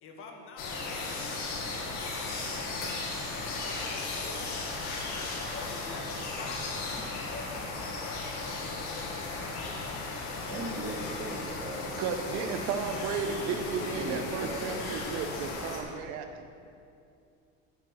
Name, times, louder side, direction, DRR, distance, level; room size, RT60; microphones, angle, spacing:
voice 1, 0.0-3.0 3.4-4.5 5.5-6.8 7.3-7.8 8.5-9.6, left 3 dB, 45° left, 2 dB, 1.5 m, -47 dB
sound 1, 0.6-15.8, left 3 dB, 70° left, 2.3 m, -36 dB
voice 2, 10.4-15.1, right 2 dB, 35° right, -2 dB, 1.8 m, -40 dB
voice 3, 12.0-16.5, right 6 dB, 65° right, 7 dB, 1.1 m, -34 dB
10.5 x 8.9 x 6.2 m, 2.5 s
cardioid pair, 160°, 30 cm